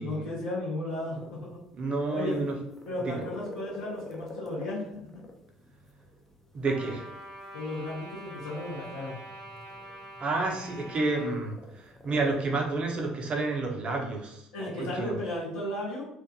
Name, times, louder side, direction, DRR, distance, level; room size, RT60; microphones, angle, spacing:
voice 1, 0.0-1.6 2.1-2.4 2.9-5.2 7.5-9.2 14.5-16.1, left 1 dB, 80° left, -9 dB, 0.8 m, -35 dB
sound 1, 0.9-12.4, left 2 dB, 10° left, 0.6 m, -48 dB
voice 2, 1.8-2.5 3.0-3.2 6.5-7.0 10.2-15.1, right 3 dB, 40° right, 2 dB, 0.7 m, -30 dB
Trumpet, 6.6-11.3, right 1 dB, 60° right, 1.0 m, -45 dB
2.5 x 2.4 x 2.6 m, 0.76 s
hypercardioid pair, 60°, 3 cm